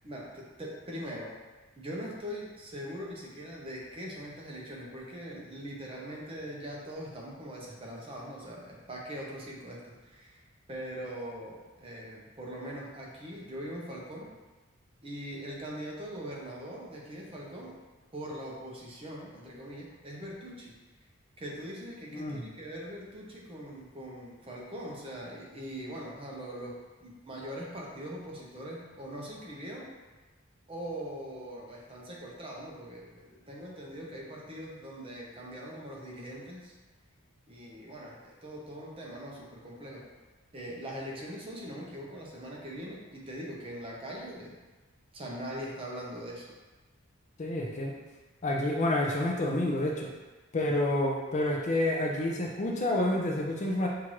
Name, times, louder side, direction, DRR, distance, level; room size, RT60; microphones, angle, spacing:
voice 1, 0.0-1.4 1.8-10.4 10.7-14.3 15.0-17.7 18.1-21.1 21.4-29.9 30.7-36.7 37.5-40.1 40.5-44.5 45.1-46.5, equal, 25° right, -3 dB, 0.7 m, -41 dB
voice 2, 22.1-22.5 47.4-48.0 48.4-50.1 50.5-53.9, left 1 dB, 35° left, -1 dB, 0.5 m, -29 dB
5.7 x 2.5 x 3.0 m, 1.2 s
head